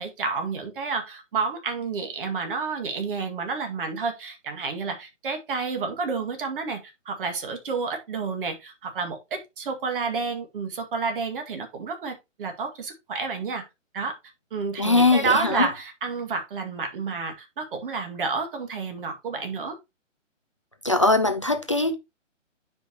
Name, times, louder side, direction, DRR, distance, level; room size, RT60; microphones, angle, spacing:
voice 1, 0.0-6.8 7.1-13.6 13.9-14.2 14.5-19.8, right 4 dB, 45° right, 2.0 m, -30 dB
voice 2, 14.8-15.7 20.8-22.0, left 3 dB, 25° left, 0.4 m, -21 dB
10.0 x 5.1 x 2.9 m
figure-of-eight pair, 135°, 39 cm